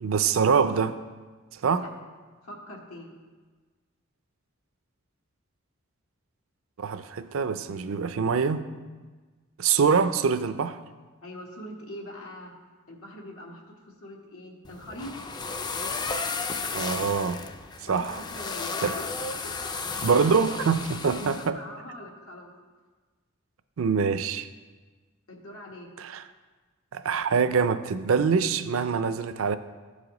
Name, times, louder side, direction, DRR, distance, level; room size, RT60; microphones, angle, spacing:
voice 1, 0.0-1.0 1.6-1.8 6.8-8.6 9.6-10.8 16.7-17.4 17.9-18.2 18.8-19.0 20.0-21.6 23.8-24.5 26.0-26.2 26.9-29.6, right 5 dB, 70° right, 11 dB, 0.5 m, -24 dB
voice 2, 2.4-3.1 11.2-12.5 12.9-15.1 17.9-19.5 20.0-20.5 21.0-22.5 25.3-25.9, left 1 dB, 90° left, -1 dB, 1.7 m, -43 dB
sound 1, 14.6-21.5, left 4 dB, 20° left, 0.3 m, -34 dB
14.5 x 4.9 x 3.9 m, 1.4 s
head